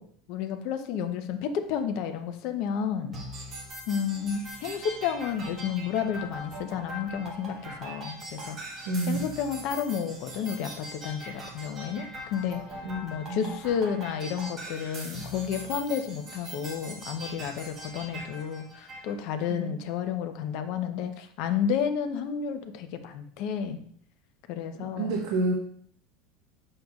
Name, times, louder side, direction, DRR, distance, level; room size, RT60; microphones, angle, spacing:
voice 1, 0.0-3.4 3.9-23.8 24.5-25.2, left 7 dB, 50° left, 8 dB, 0.7 m, -31 dB
sound 1, 3.1-19.1, right 1 dB, 20° right, 1.3 m, -41 dB
voice 2, 8.8-9.3 12.8-13.0 13.3-13.5 19.5-19.7 24.8-25.5, right 2 dB, 60° right, -1 dB, 1.2 m, -29 dB
7.7 x 6.5 x 2.3 m, 0.63 s
supercardioid pair, 170°, 0 cm